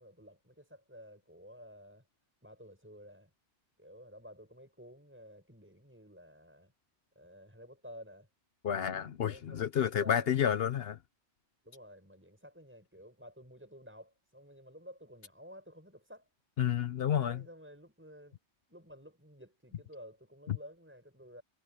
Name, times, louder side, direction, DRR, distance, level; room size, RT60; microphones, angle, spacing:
voice 1, 0.0-2.0 2.4-3.3 3.8-6.7 7.1-8.3 9.2-10.6 11.6-16.3 17.1-18.4 18.7-21.4, equal, 10° right, 6.3 m, -53 dB
voice 2, 8.6-11.0 16.6-17.4 20.5-20.6, left 9 dB, 65° left, 0.9 m, -30 dB
omnidirectional pair, 1.1 m